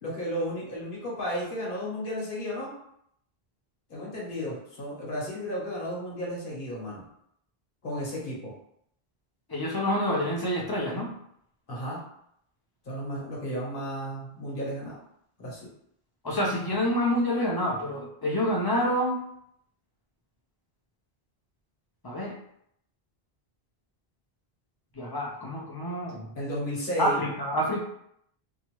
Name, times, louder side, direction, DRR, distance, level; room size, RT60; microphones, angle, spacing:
voice 1, 0.0-2.7 3.9-7.0 7.8-8.5 11.7-12.0 12.8-15.0 15.4-15.7 26.3-27.2, equal, 60° left, -5 dB, 1.2 m, -33 dB
voice 2, 9.5-11.1 16.2-19.2 22.0-22.4 25.0-26.3 27.0-27.8, equal, 30° left, -2 dB, 0.5 m, -27 dB
2.8 x 2.3 x 3.0 m, 0.72 s
omnidirectional pair, 1.0 m